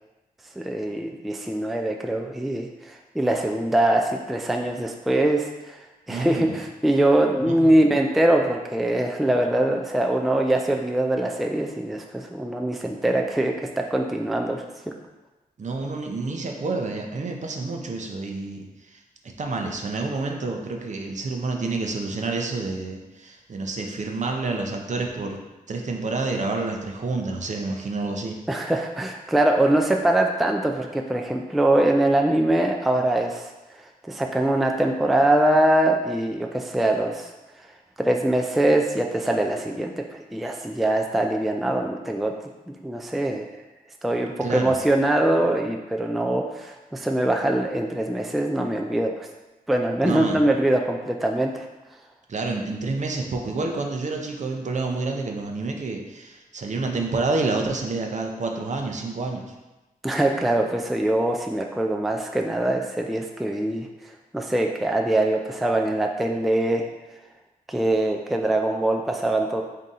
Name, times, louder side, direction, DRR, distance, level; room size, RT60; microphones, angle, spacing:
voice 1, 0.6-5.8 6.1-14.7 28.5-33.5 34.1-37.3 38.0-42.3 42.7-43.5 44.0-49.3 49.7-51.7 60.0-63.9 64.3-66.9 67.7-69.6, right 1 dB, ahead, 2 dB, 0.3 m, -23 dB
voice 2, 6.1-6.6 7.4-7.8 15.6-19.0 19.4-25.4 25.7-28.4 44.4-44.8 50.0-50.5 52.3-59.4, right 3 dB, 50° right, 2 dB, 0.6 m, -28 dB
3.8 x 2.7 x 3.6 m, 1.1 s
cardioid pair, 70°, 16 cm